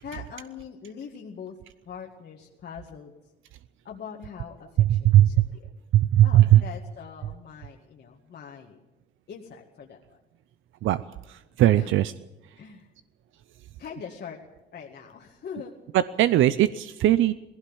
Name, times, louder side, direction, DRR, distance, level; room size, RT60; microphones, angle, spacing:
voice 1, 0.0-1.6 1.8-3.1 3.8-5.7 6.2-8.8 9.3-10.2 11.7-11.9 12.6-12.9 13.8-14.4 14.7-15.7, left 7 dB, 55° left, 0 dB, 2.0 m, -42 dB
voice 2, 4.8-5.3 5.9-6.6 10.8-12.1 15.9-17.3, right 13 dB, 80° right, 15 dB, 0.6 m, -19 dB
18.5 x 16.0 x 9.0 m, 1.0 s
cardioid pair, 90°, 20 cm